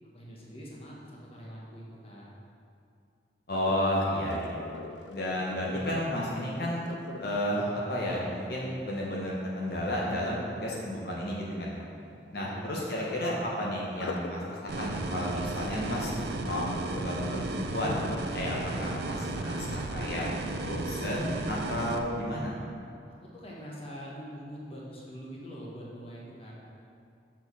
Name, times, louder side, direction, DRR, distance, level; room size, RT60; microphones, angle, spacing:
voice 1, 0.1-2.3 12.3-12.8 23.2-26.5, equal, 30° left, -5 dB, 1.1 m, -44 dB
Sink (filling or washing), 3.5-9.5 13.8-20.9 21.4-21.7 22.2-22.3, left 3 dB, 75° left, 0.4 m, -45 dB
voice 2, 3.5-4.7 5.1-6.8 7.2-11.9 12.3-14.4 14.8-16.1 16.4-18.0 18.3-20.3 20.6-22.6, equal, 55° left, -4 dB, 1.0 m, -32 dB
sound 1, 14.7-22.0, right 2 dB, 65° right, 0.4 m, -34 dB
6.3 x 4.4 x 5.5 m, 2.4 s
head